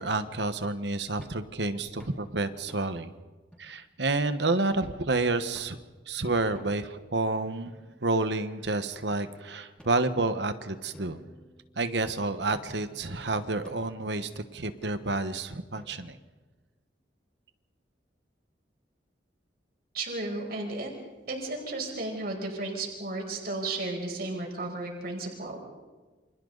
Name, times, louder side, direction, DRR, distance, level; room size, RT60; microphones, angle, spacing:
voice 1, 0.0-3.1 3.6-5.8 6.1-7.7 8.0-11.2 11.8-16.2, right 2 dB, 75° right, 10 dB, 1.3 m, -29 dB
sound 1, 1.2-1.5 2.0-2.2 2.7-3.1 3.5-3.6 4.1-4.3 4.8-5.1 5.5-5.9 6.5-7.0 7.7-8.4 9.1-9.2 9.8-10.5 10.9-12.0 12.5-13.0 13.6-14.0 14.8-15.3 15.8-16.3, equal, 5° left, 4.5 m, -53 dB
voice 2, 19.9-20.9 21.3-25.6, right 2 dB, 60° right, 0 dB, 5.4 m, -34 dB
29.5 x 26.5 x 4.1 m, 1.3 s
head